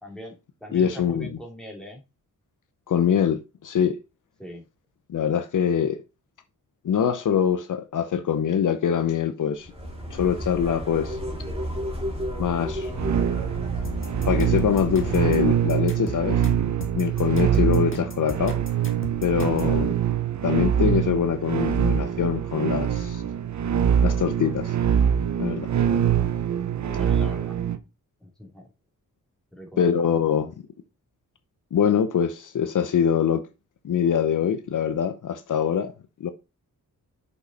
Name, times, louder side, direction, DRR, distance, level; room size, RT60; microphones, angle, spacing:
voice 1, 0.0-2.0 4.4-4.7 17.5-17.7 26.7-27.6 28.2-28.7 29.5-30.2, left 1 dB, ahead, 2.8 m, -42 dB
voice 2, 0.7-1.3 2.9-4.0 5.1-6.0 6.8-9.7 10.1-11.2 12.4-12.9 14.3-16.4 16.9-18.6 19.2-20.0 20.4-23.2 24.0-24.7 25.4-25.7 29.8-30.7 31.7-33.4 33.8-35.9 36.2-36.3, left 8 dB, 65° left, 0.7 m, -24 dB
sound 1, 9.5-15.3, equal, 15° right, 2.5 m, -32 dB
sound 2, 12.9-27.8, right 9 dB, 55° right, 0.7 m, -24 dB
sound 3, 13.8-19.7, left 2 dB, 35° left, 1.7 m, -38 dB
6.3 x 5.5 x 4.1 m
wide cardioid pair, 105°, 34 cm